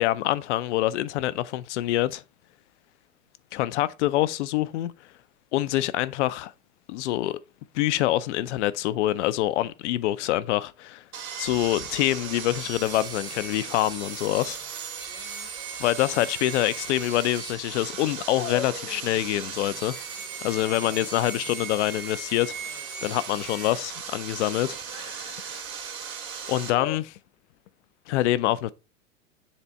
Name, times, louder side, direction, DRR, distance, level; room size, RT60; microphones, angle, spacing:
voice 1, 0.0-2.2 3.5-4.9 5.5-6.5 6.9-7.4 7.7-11.0 11.4-14.6 15.8-20.0 20.4-22.7 23.0-25.6 26.5-27.2 28.1-28.7, left 15 dB, 55° left, 0.6 m, -26 dB
Sawing, 11.1-26.7, right 7 dB, 70° right, 2.2 m, -37 dB
Dog, 11.4-27.0, left 7 dB, 80° left, 1.6 m, -45 dB
7.2 x 3.4 x 4.1 m
hypercardioid pair, 100°, 43 cm